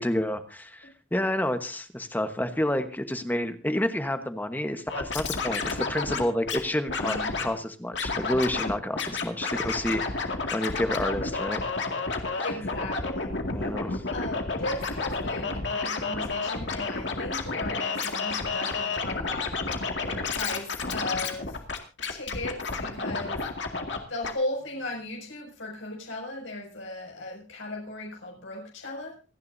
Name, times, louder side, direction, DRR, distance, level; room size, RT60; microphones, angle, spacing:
voice 1, 0.0-10.0 10.5-11.6 12.4-12.5 13.5-14.0, left 1 dB, 10° left, 8 dB, 1.2 m, -29 dB
Scratching (performance technique), 4.9-6.6 6.9-7.5 7.9-8.7 9.0-24.0 24.2-24.3, left 4 dB, 65° left, 2.2 m, -30 dB
voice 2, 7.0-7.3 12.4-13.4 14.1-19.5 20.1-21.6 22.1-23.4 24.1-29.1, left 2 dB, 90° left, -1 dB, 6.4 m, -36 dB
28.0 x 10.5 x 2.7 m, 0.33 s
head